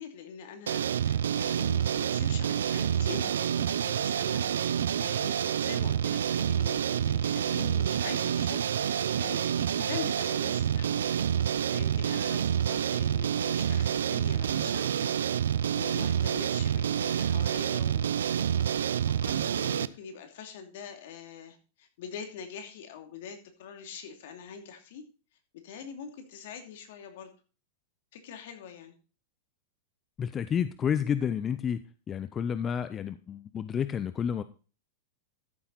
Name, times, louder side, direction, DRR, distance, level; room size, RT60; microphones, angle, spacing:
voice 1, 0.0-11.2 11.7-15.2 15.7-18.1 18.9-25.0 25.6-27.3 28.1-28.9, left 7 dB, 65° left, 6 dB, 2.6 m, -44 dB
sound 1, 0.7-19.9, right 9 dB, 90° right, 0.5 m, -28 dB
voice 2, 30.2-34.4, left 8 dB, 25° left, 13 dB, 0.6 m, -30 dB
13.5 x 7.0 x 4.0 m, 0.35 s
hypercardioid pair, 130°, 0 cm